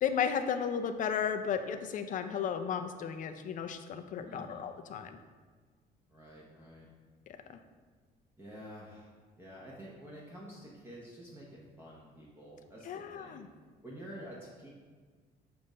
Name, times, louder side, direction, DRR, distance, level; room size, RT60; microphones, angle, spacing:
voice 1, 0.0-5.2 7.3-7.6 12.9-13.5, left 7 dB, 50° left, 8 dB, 0.5 m, -34 dB
voice 2, 4.3-4.6 6.1-6.9 8.4-13.4 13.8-14.7, equal, 15° right, -5 dB, 1.0 m, -49 dB
6.9 x 2.6 x 5.3 m, 1.5 s
cardioid pair, 110°, 17 cm